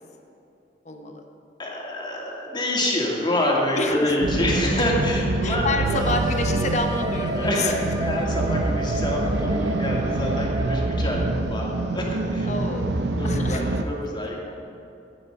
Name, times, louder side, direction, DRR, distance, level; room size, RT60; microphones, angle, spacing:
voice 1, 0.8-1.2 3.6-4.2 5.4-7.7 12.5-12.9 13.2-13.6, left 2 dB, 40° left, 4 dB, 1.0 m, -28 dB
voice 2, 1.6-6.0 7.3-12.5 13.2-14.4, left 1 dB, 25° left, -2 dB, 2.2 m, -27 dB
sound 1, 4.2-13.8, right 2 dB, 80° right, 0.7 m, -26 dB
Wind instrument woodwind instrument, 5.9-11.4, right 1 dB, 25° right, 0.8 m, -33 dB
14.5 x 8.8 x 5.5 m, 2.7 s
head